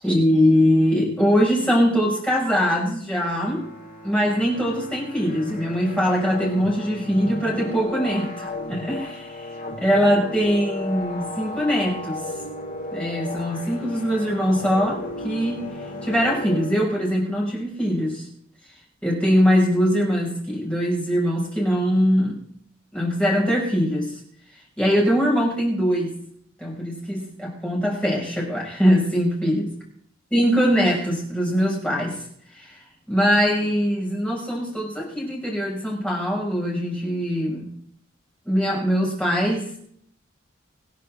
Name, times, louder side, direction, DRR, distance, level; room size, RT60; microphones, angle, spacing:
voice 1, 0.0-3.7 4.0-12.2 12.9-15.6 16.0-18.3 19.0-22.4 22.9-24.2 24.8-26.1 26.6-29.6 30.3-32.2 32.5-37.7 38.4-39.7, equal, 5° left, -4 dB, 6.4 m, -22 dB
sound 1, 3.1-17.2, left 2 dB, 45° left, 6.0 m, -35 dB
25.0 x 10.5 x 3.8 m, 0.64 s
head